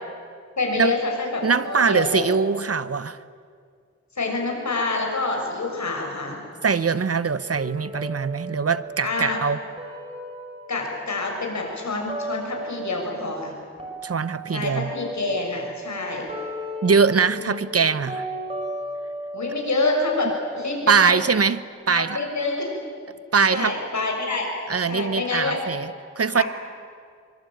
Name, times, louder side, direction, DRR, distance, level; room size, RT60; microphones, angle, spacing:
voice 1, 0.6-2.3 4.2-6.4 9.0-9.4 10.7-13.5 14.5-16.3 17.4-17.6 19.3-21.2 21.9-22.7 23.5-24.5 24.9-25.6 26.3-26.4, left 3 dB, 70° left, 1 dB, 6.7 m, -27 dB
voice 2, 1.4-3.2 6.6-9.6 14.0-14.9 16.8-18.3 20.9-22.2 23.3-23.8 24.7-25.9 26.2-26.4, right 5 dB, 55° right, 15 dB, 0.9 m, -22 dB
sound 1, 7.5-13.5 13.8-21.6, right 1 dB, 20° right, 6.0 m, -36 dB
25.5 x 24.0 x 9.1 m, 2.2 s
wide cardioid pair, 85°, 29 cm